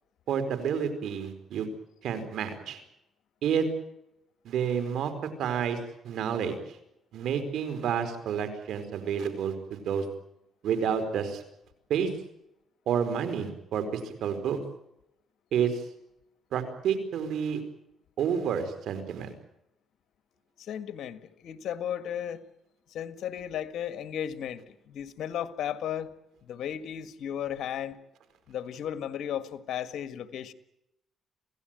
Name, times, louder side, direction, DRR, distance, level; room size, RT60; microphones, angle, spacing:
voice 1, 0.3-1.7 2.0-2.8 3.4-3.7 4.4-5.1 5.4-5.8 6.0-6.8 7.1-10.1 10.6-11.4 11.9-12.1 12.9-14.6 15.5-15.8 16.5-17.6 18.2-19.3, right 7 dB, 75° right, 9 dB, 4.6 m, -29 dB
voice 2, 20.6-22.4 22.9-26.1 26.5-28.0 28.5-30.5, left 9 dB, 70° left, 11 dB, 1.7 m, -35 dB
27.0 x 17.0 x 9.1 m, 0.82 s
cardioid pair, 90°, 0 cm